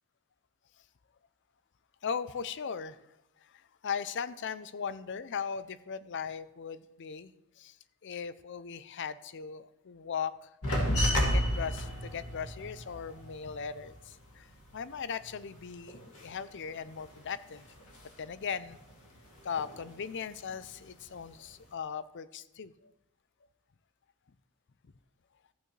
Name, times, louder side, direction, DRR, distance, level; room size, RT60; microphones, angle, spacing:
voice 1, 2.0-3.0 3.4-7.8 8.0-10.5 11.2-17.7 18.2-18.8 19.4-22.9, left 6 dB, 55° left, 15 dB, 0.5 m, -38 dB
sound 1, 10.6-15.6 15.9-17.3 17.5-18.4 18.7-20.1 20.5-21.1, equal, 80° left, 2.4 m, -33 dB
14.5 x 8.8 x 3.3 m, 0.90 s
head